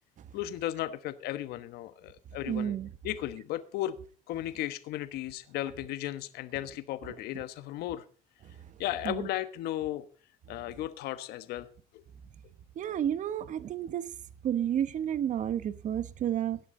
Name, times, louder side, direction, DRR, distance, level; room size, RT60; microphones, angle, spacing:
voice 1, 0.3-2.7 3.0-4.0 4.3-8.0 8.8-10.1 10.5-11.7 11.9-12.0, left 14 dB, 75° left, 1.2 m, -35 dB
voice 2, 2.5-2.9 9.0-9.3 12.8-14.1 14.4-16.6, right 10 dB, 50° right, 1.2 m, -31 dB
17.0 x 11.0 x 3.9 m
cardioid pair, 115°, 16 cm